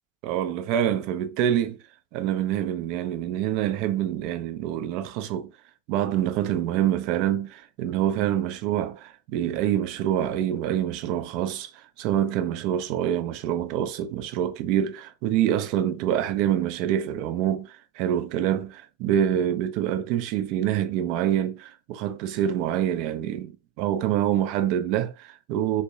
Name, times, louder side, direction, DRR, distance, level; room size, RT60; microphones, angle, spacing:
voice 1, 0.2-1.8 2.1-5.5 5.9-25.8, right 11 dB, 45° right, 0.4 m, -26 dB
3.4 x 2.1 x 2.7 m
figure-of-eight pair, 90°, 0 cm